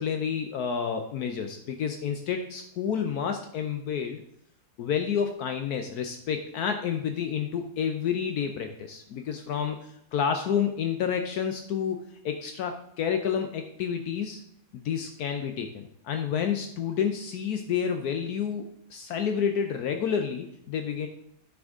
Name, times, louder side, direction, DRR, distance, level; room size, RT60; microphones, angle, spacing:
voice 1, 0.0-4.2 4.8-12.0 12.2-14.4 14.7-21.1, left 7 dB, 75° left, 6 dB, 1.2 m, -29 dB
9.6 x 6.3 x 3.7 m, 0.74 s
omnidirectional pair, 1.7 m